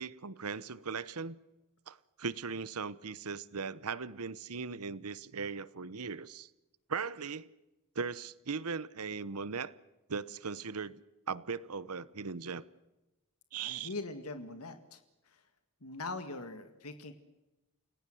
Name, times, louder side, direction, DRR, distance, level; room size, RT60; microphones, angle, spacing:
voice 1, 0.0-1.4 1.9-6.5 6.9-7.5 7.9-9.7 10.1-12.6 13.5-13.9, right 5 dB, 85° right, 1.0 m, -38 dB
voice 2, 13.5-15.4 15.8-17.1, left 3 dB, 80° left, 1.9 m, -42 dB
29.5 x 17.5 x 7.8 m
head